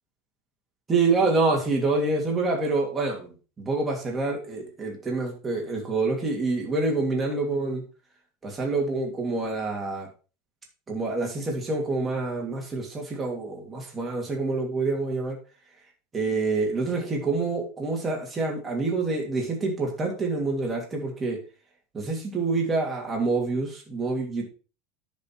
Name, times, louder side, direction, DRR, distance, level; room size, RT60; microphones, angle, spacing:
voice 1, 0.9-3.3 3.6-7.8 8.4-10.1 10.9-15.4 16.1-21.4 21.9-24.4, right 3 dB, 15° right, -1 dB, 2.8 m, -27 dB
10.5 x 5.4 x 4.7 m, 0.35 s
supercardioid pair, 155°, 0 cm